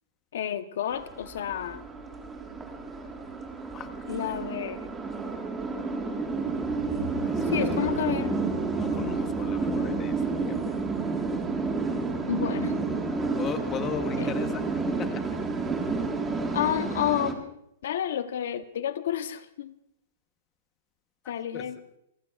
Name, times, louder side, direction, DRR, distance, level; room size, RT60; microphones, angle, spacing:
voice 1, 0.3-1.8 4.1-4.9 7.5-8.3 12.3-12.8 14.2-14.3 16.5-17.4 17.8-19.7 21.3-21.8, left 11 dB, 60° left, 10 dB, 0.9 m, -30 dB
sound 1, 0.9-17.3, right 3 dB, 10° right, 1.6 m, -30 dB
voice 2, 7.2-8.4 8.7-10.6 13.1-15.3 21.2-21.7, left 7 dB, 15° left, 8 dB, 1.0 m, -38 dB
29.5 x 15.5 x 2.4 m, 0.77 s
hypercardioid pair, 170°, 0 cm